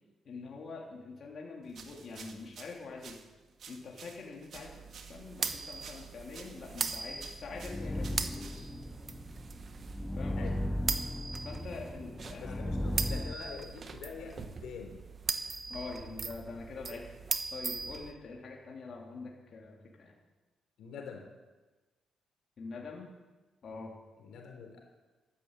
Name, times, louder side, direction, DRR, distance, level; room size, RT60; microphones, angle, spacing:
voice 1, 0.2-3.2 3.7-8.7 10.1-10.6 11.4-12.8 15.7-17.0 17.5-20.1 22.6-23.1 23.6-23.9, left 4 dB, 50° left, -2 dB, 3.2 m, -45 dB
sound 1, 1.7-8.9, right 6 dB, 60° right, 1.8 m, -52 dB
sound 2, 4.5-18.1, right 4 dB, 40° right, 1.2 m, -40 dB
sound 3, 6.9-13.3, left 1 dB, 5° left, 0.5 m, -37 dB
voice 2, 12.4-15.0 20.8-21.3 24.2-24.8, left 6 dB, 80° left, 2 dB, 3.5 m, -45 dB
12.5 x 11.5 x 8.1 m, 1.2 s
cardioid pair, 95°, 0 cm